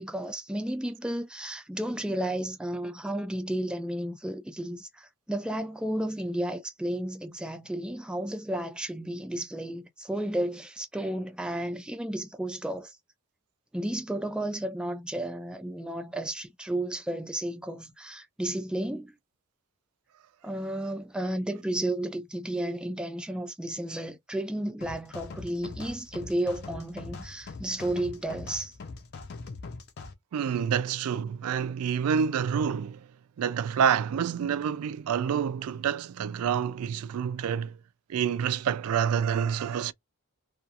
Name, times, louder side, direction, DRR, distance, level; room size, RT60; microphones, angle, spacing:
voice 1, 0.0-13.0 13.7-19.1 20.4-28.7, right 1 dB, 5° right, 0.3 m, -32 dB
sound 1, 24.8-30.1, left 3 dB, 50° left, 0.5 m, -42 dB
voice 2, 30.3-33.1 33.4-37.8 38.1-39.9, right 7 dB, 85° right, 0.3 m, -28 dB
2.3 x 2.3 x 2.7 m
head